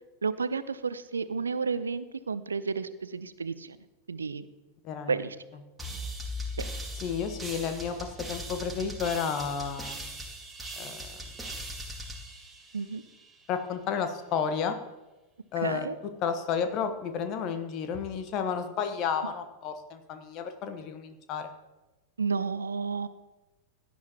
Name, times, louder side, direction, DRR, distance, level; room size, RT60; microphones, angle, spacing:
voice 1, 0.2-3.8 4.1-4.5 5.1-5.4 12.7-13.0 15.6-16.0 22.2-23.1, right 5 dB, 75° right, 15 dB, 0.6 m, -31 dB
voice 2, 4.8-5.2 7.0-10.0 10.8-11.1 13.5-14.8 15.5-15.9 16.2-21.5, left 6 dB, 35° left, 7 dB, 1.3 m, -31 dB
sound 1, 5.8-13.3, equal, 5° right, 2.3 m, -39 dB
17.0 x 10.0 x 3.0 m, 1.1 s
figure-of-eight pair, 90°, 0 cm